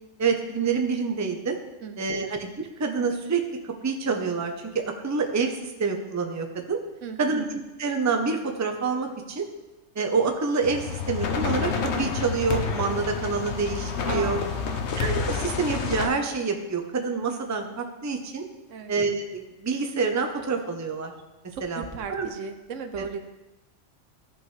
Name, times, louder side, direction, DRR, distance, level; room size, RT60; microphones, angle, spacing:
voice 1, 0.2-1.6 2.0-2.5 2.8-6.8 7.2-9.5 9.9-11.7 12.0-14.4 15.0-18.5 18.9-21.1 21.6-21.8 22.1-22.3 23.0-23.1, right 4 dB, 20° right, 4 dB, 0.5 m, -27 dB
voice 2, 1.8-2.3 7.0-7.4 14.1-14.8 18.7-19.0 21.5-23.2, right 5 dB, 80° right, 8 dB, 1.1 m, -37 dB
sound 1, 10.6-16.1, left 6 dB, 65° left, 1.0 m, -29 dB
14.5 x 5.7 x 3.2 m, 1.1 s
omnidirectional pair, 1.3 m